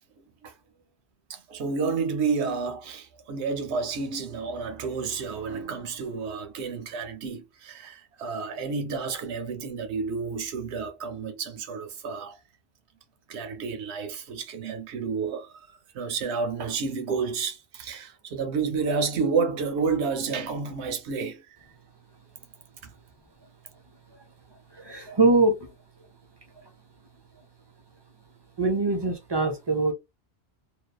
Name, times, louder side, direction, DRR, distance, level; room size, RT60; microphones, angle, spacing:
voice 1, 1.3-12.4 13.3-15.5 15.9-21.4 22.8-22.9, right 5 dB, 80° right, 1.0 m, -30 dB
voice 2, 24.7-25.7 26.6-26.7 28.6-29.9, right 2 dB, 35° right, 0.4 m, -23 dB
2.7 x 2.1 x 2.3 m
omnidirectional pair, 1.1 m